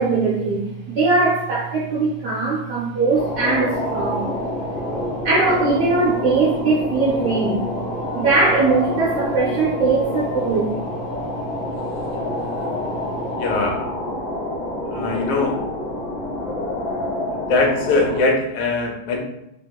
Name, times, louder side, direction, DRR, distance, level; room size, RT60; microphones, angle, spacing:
voice 1, 0.0-4.3 5.2-7.6 8.1-10.7, right 3 dB, 75° right, -6 dB, 0.9 m, -20 dB
sound 1, 3.2-18.2, left 1 dB, 60° left, 0.7 m, -27 dB
voice 2, 13.4-13.8 14.9-15.6 17.5-19.2, left 3 dB, 85° left, 0 dB, 1.6 m, -21 dB
3.3 x 2.9 x 2.2 m, 0.82 s
omnidirectional pair, 2.3 m